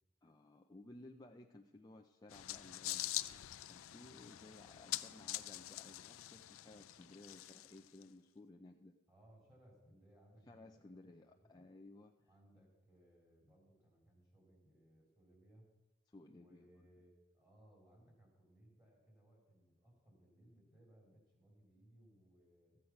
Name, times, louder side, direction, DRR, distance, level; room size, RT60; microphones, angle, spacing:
voice 1, 0.2-9.0 10.5-12.1 16.1-16.9, left 2 dB, 20° left, 2 dB, 0.5 m, -58 dB
sound 1, 2.3-8.0, left 15 dB, 90° left, 0.4 m, -45 dB
voice 2, 9.1-11.6 12.3-15.7 16.3-22.8, right 1 dB, 15° right, -2 dB, 3.4 m, -66 dB
14.0 x 7.9 x 5.8 m, 1.0 s
head